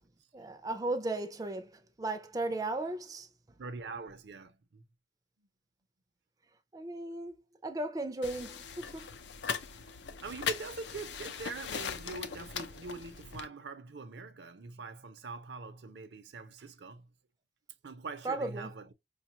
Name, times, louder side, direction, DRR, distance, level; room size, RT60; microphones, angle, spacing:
voice 1, 0.3-3.3 6.7-7.3 7.6-9.1 18.2-18.7, right 2 dB, 20° right, 0.4 m, -36 dB
voice 2, 3.6-4.8 10.2-17.1 17.8-18.9, right 3 dB, 70° right, 0.6 m, -43 dB
sound 1, 8.2-13.5, left 7 dB, 70° left, 0.5 m, -39 dB
5.0 x 2.3 x 2.8 m
head